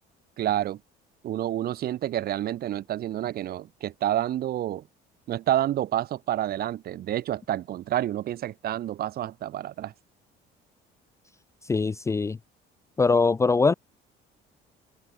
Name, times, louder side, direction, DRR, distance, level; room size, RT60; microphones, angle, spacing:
voice 1, 0.4-0.8 1.2-4.9 5.3-9.9, right 12 dB, 55° right, 5.0 m, -29 dB
voice 2, 11.7-12.4 13.0-13.7, left 4 dB, 15° left, 0.7 m, -22 dB
cardioid pair, 165°, 19 cm